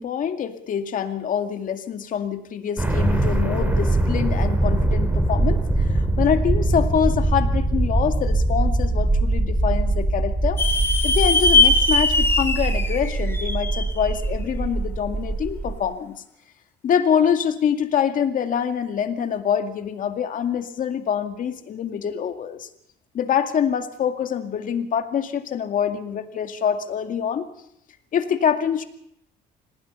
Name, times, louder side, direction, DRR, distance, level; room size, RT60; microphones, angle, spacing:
voice 1, 0.0-5.6 5.9-10.6 11.0-16.1 16.8-22.7 23.1-27.5 28.1-28.8, left 8 dB, 50° left, 7 dB, 2.2 m, -25 dB
sound 1, 2.8-15.8, right 2 dB, 10° right, 4.4 m, -22 dB
sound 2, 10.6-14.1, left 3 dB, 15° left, 2.7 m, -20 dB
26.5 x 19.0 x 5.6 m, 0.75 s
cardioid pair, 110°, 17 cm